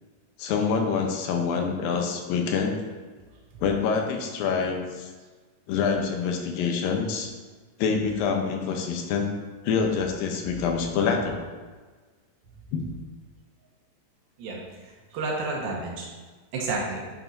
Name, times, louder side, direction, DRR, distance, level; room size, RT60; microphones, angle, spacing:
voice 1, 0.4-2.8 3.6-5.1 5.7-7.3 7.8-9.3 9.6-11.5 12.7-12.9, left 5 dB, 85° left, 2 dB, 2.6 m, -26 dB
voice 2, 14.4-16.1 16.5-17.1, right 3 dB, 90° right, -2 dB, 3.2 m, -31 dB
8.8 x 7.1 x 2.6 m, 1.4 s
omnidirectional pair, 4.1 m